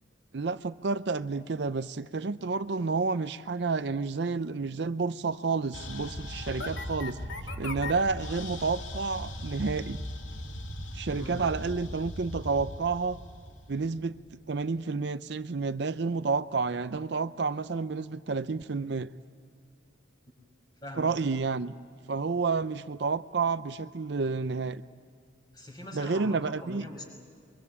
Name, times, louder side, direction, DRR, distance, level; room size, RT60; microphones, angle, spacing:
voice 1, 0.3-10.0 10.9-13.2 13.7-14.2 14.5-19.1 21.0-21.7 22.1-24.8 25.9-26.9, right 4 dB, 60° right, 12 dB, 0.5 m, -30 dB
sound 1, 5.7-14.3, left 1 dB, 85° left, 2.5 m, -38 dB
voice 2, 25.5-27.1, left 1 dB, 20° left, 2 dB, 5.5 m, -42 dB
23.5 x 23.5 x 8.5 m, 2.2 s
head